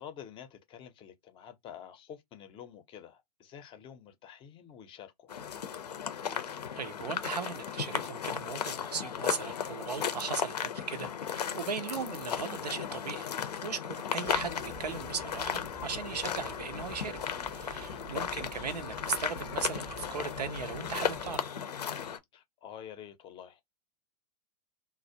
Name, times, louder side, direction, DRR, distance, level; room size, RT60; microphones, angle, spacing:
voice 1, 0.0-5.3 14.1-14.3 17.9-18.3 22.3-23.6, left 9 dB, 25° left, 0.5 m, -48 dB
FX - pasos sobre gravilla hierba y tierra, 5.3-22.2, left 8 dB, 80° left, 0.5 m, -36 dB
voice 2, 6.7-13.3 13.6-17.2 17.5-21.5, right 6 dB, 85° right, 0.5 m, -38 dB
sound 1, 14.2-21.4, right 7 dB, 30° right, 0.4 m, -50 dB
2.3 x 2.0 x 2.7 m
hypercardioid pair, 110°, 20 cm